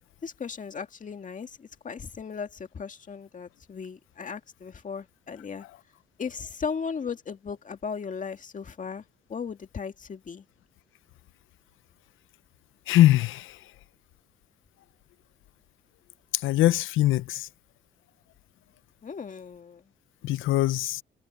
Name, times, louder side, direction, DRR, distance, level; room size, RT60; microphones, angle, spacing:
voice 1, 0.2-5.7 6.2-9.0 9.3-10.4 19.0-19.8, left 6 dB, 40° left, 2.1 m, -36 dB
voice 2, 12.9-13.6 16.3-17.5 20.2-21.0, left 15 dB, 85° left, 0.7 m, -22 dB
cardioid pair, 90°, 20 cm